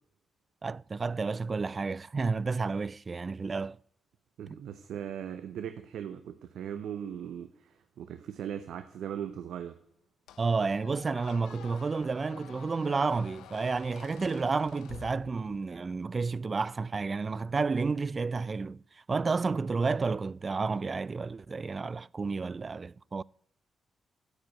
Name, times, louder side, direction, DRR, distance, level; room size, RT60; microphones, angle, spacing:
voice 1, 0.6-3.8 4.5-4.6 10.4-23.2, right 4 dB, 40° right, 0.3 m, -31 dB
voice 2, 4.4-9.8, right 9 dB, 80° right, 0.7 m, -39 dB
Squeak, 10.3-15.8, left 10 dB, 85° left, 0.5 m, -50 dB
12.5 x 5.1 x 8.3 m
supercardioid pair, 55°, 0 cm